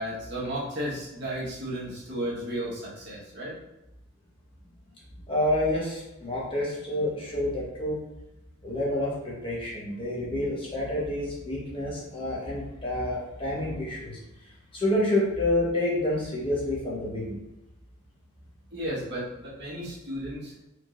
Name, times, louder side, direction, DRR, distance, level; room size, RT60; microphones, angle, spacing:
voice 1, 0.0-3.6 18.7-20.5, equal, 55° right, -6 dB, 1.5 m, -34 dB
voice 2, 5.3-8.0 8.6-14.2 14.7-17.4, left 1 dB, 25° left, -6 dB, 1.2 m, -28 dB
5.2 x 3.8 x 2.6 m, 0.96 s
head